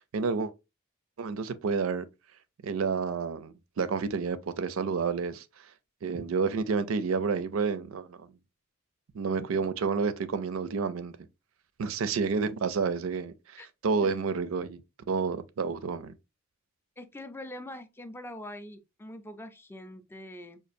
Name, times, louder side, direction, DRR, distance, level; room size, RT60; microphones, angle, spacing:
voice 1, 0.1-0.5 1.2-2.1 2.6-5.4 6.0-8.3 9.1-11.3 11.8-14.8 15.1-16.2, right 5 dB, 75° right, 0.4 m, -30 dB
voice 2, 17.0-20.6, left 1 dB, 10° left, 0.4 m, -43 dB
5.1 x 2.4 x 2.5 m
head